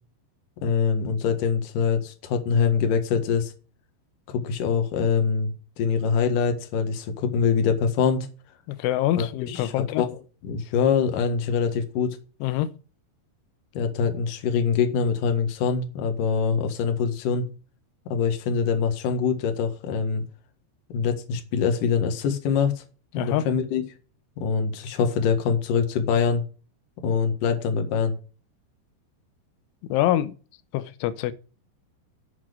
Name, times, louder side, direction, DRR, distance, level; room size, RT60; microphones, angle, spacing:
voice 1, 0.6-3.5 4.3-5.5 5.8-8.3 9.1-10.1 10.4-12.2 13.7-17.5 18.1-20.2 20.9-22.8 23.1-23.8 24.4-26.4 27.0-28.1, left 6 dB, 60° left, 2.6 m, -24 dB
voice 2, 8.7-10.0 12.4-12.7 23.1-23.5 29.9-30.3 30.7-31.3, left 13 dB, 90° left, 3.2 m, -25 dB
8.2 x 7.4 x 6.3 m
omnidirectional pair, 5.3 m